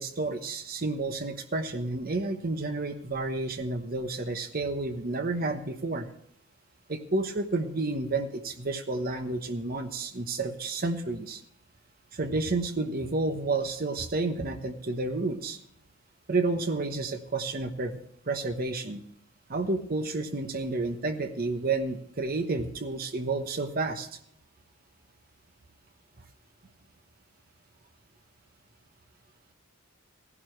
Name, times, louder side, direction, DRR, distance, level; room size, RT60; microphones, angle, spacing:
voice 1, 0.0-6.1 6.9-11.4 12.1-15.6 16.3-18.0 18.3-19.0 19.5-24.1, right 3 dB, 45° right, 7 dB, 1.0 m, -30 dB
17.0 x 11.0 x 3.2 m, 0.69 s
head